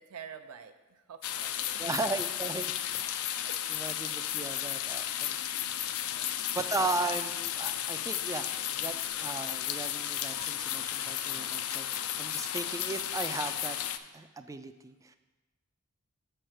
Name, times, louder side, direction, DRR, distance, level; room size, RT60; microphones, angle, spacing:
voice 1, 0.0-1.8 3.4-3.6 6.0-6.3, right 7 dB, 90° right, 7 dB, 0.5 m, -48 dB
sound 1, 1.2-14.0, left 11 dB, 75° left, 0.4 m, -34 dB
voice 2, 1.8-3.4 3.7-5.4 6.5-13.8 14.1-15.2, right 3 dB, 15° right, 10 dB, 0.3 m, -36 dB
7.3 x 4.6 x 6.3 m, 1.2 s
head